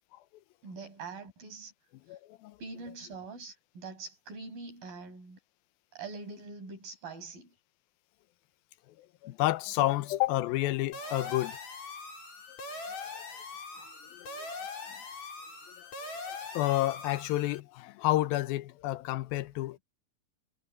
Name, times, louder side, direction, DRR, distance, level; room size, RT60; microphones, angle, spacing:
voice 1, 0.6-1.7 2.6-5.4 5.9-7.5, right 4 dB, 70° right, 8.4 m, -43 dB
voice 2, 2.1-2.5 9.2-11.6 14.2-14.3 16.5-19.8, left 16 dB, 80° left, 2.6 m, -29 dB
sound 1, 10.9-17.6, left 3 dB, 50° left, 5.6 m, -42 dB
omnidirectional pair, 4.2 m